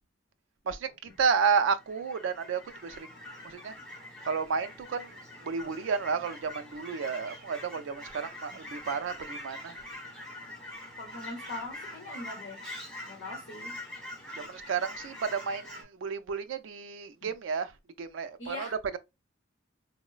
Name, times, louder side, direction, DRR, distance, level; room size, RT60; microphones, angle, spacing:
voice 1, 0.7-3.1 3.4-3.7 4.2-5.2 5.4-9.8 14.3-17.7 18.0-18.7, right 5 dB, 65° right, 0.3 m, -31 dB
Fowl / Chirp tweet, 1.1-15.8, left 1 dB, 5° left, 0.9 m, -44 dB
voice 2, 11.0-12.7 13.1-13.8 18.4-18.8, left 2 dB, 65° left, 1.0 m, -41 dB
3.7 x 2.0 x 2.3 m
head